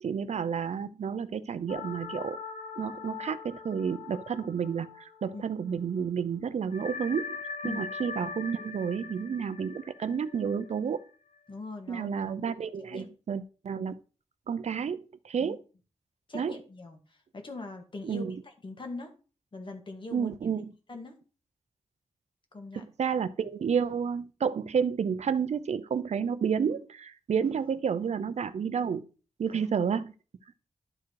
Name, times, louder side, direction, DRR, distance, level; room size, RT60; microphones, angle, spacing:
voice 1, 0.0-2.4 2.8-7.4 7.6-11.0 11.9-14.0 14.5-15.6 16.3-16.5 18.0-18.3 20.1-20.7 22.7-29.1 29.4-30.1, right 7 dB, 75° right, 0.6 m, -30 dB
sound 1, 1.7-5.7 6.0-6.1 6.7-11.4, left 5 dB, 85° left, 1.0 m, -41 dB
voice 2, 11.5-12.1 12.5-12.6 12.9-13.1 15.4-15.6 16.3-19.1 19.5-20.3 20.9-21.2 22.5-22.8 29.5-29.7, left 3 dB, 45° left, 1.9 m, -42 dB
11.5 x 4.9 x 4.7 m
wide cardioid pair, 140°, 12 cm